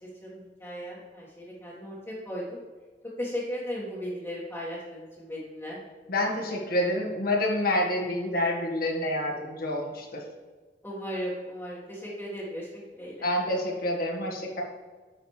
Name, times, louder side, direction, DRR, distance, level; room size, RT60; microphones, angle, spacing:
voice 1, 0.0-2.6 3.2-5.8 10.8-13.2, equal, 15° left, -8 dB, 1.7 m, -36 dB
voice 2, 6.1-10.2 13.2-14.6, left 1 dB, 55° left, 0 dB, 1.6 m, -28 dB
10.0 x 6.4 x 3.3 m, 1.4 s
head